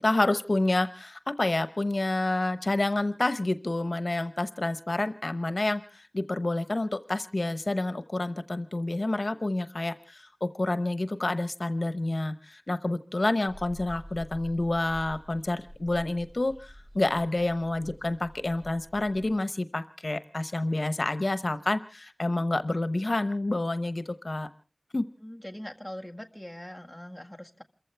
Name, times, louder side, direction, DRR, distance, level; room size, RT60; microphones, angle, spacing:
voice 1, 0.0-24.5 24.9-25.0, left 2 dB, 80° left, 12 dB, 0.9 m, -28 dB
sound 1, 13.5-19.3, equal, 35° right, 7.4 m, -48 dB
voice 2, 25.2-27.6, left 1 dB, 10° left, 3 dB, 1.8 m, -42 dB
28.0 x 15.0 x 3.3 m, 0.37 s
wide cardioid pair, 45°, 0 cm